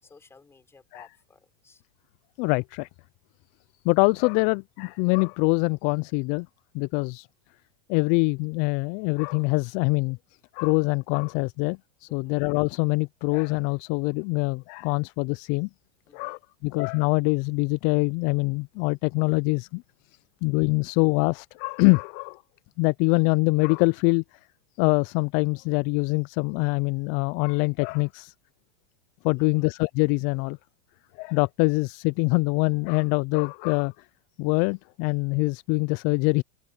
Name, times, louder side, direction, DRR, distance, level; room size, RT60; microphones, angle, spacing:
voice 1, 0.0-1.8 12.1-12.4 16.1-16.4 29.4-29.6, left 4 dB, 15° left, 6.1 m, -55 dB
voice 2, 2.4-2.9 3.8-6.5 6.7-7.3 7.9-10.2 10.5-15.7 16.1-19.8 20.4-22.4 22.8-24.4 24.8-28.3 29.2-30.6 31.2-34.1 34.4-36.4, left 31 dB, 50° left, 0.4 m, -24 dB
open air
hypercardioid pair, 115°, 17 cm